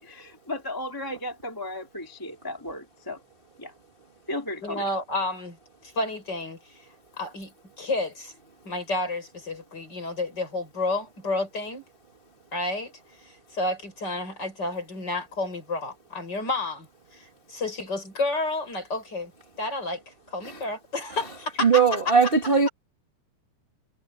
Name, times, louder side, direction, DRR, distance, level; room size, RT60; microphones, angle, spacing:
voice 1, 0.0-3.2 3.6-3.7 4.3-4.8, left 1 dB, 5° left, 2.1 m, -35 dB
voice 2, 4.6-5.6 5.8-6.8 7.2-8.3 8.6-11.9 12.5-12.9 13.2-19.3 19.6-22.3, left 2 dB, 30° left, 6.7 m, -31 dB
voice 3, 21.6-22.7, right 5 dB, 35° right, 0.8 m, -19 dB
omnidirectional pair, 3.7 m